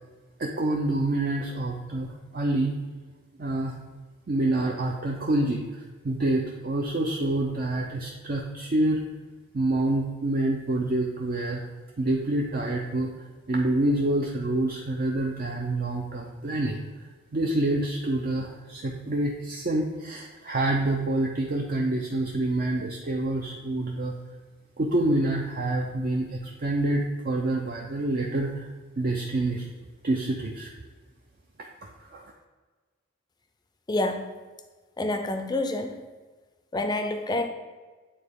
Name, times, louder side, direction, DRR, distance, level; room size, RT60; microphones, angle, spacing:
voice 1, 0.4-2.7 3.4-3.8 4.3-9.0 9.5-11.6 12.0-13.1 13.5-24.2 24.8-28.7 29.0-29.7 30.0-30.7 31.6-32.2, right 2 dB, 45° right, 0 dB, 0.5 m, -27 dB
voice 2, 33.9-34.3 35.0-36.1 36.7-37.5, left 2 dB, 20° left, 7 dB, 0.4 m, -28 dB
8.7 x 3.9 x 3.6 m, 1.3 s
head